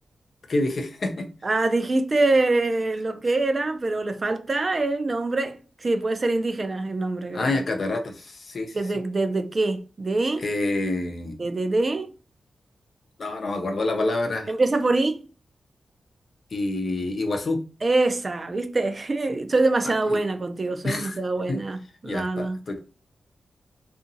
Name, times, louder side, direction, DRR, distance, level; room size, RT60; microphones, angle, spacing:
voice 1, 0.5-1.3 7.3-8.8 10.4-11.4 13.2-14.5 16.5-17.6 19.8-20.2 20.8-21.2 21.5-21.6 22.0-22.8, left 2 dB, 60° left, 0.6 m, -27 dB
voice 2, 1.4-7.4 8.7-10.4 11.4-12.1 14.5-15.2 17.8-22.6, right 2 dB, 40° right, 0.4 m, -24 dB
2.7 x 2.5 x 2.6 m
cardioid pair, 65°, 0 cm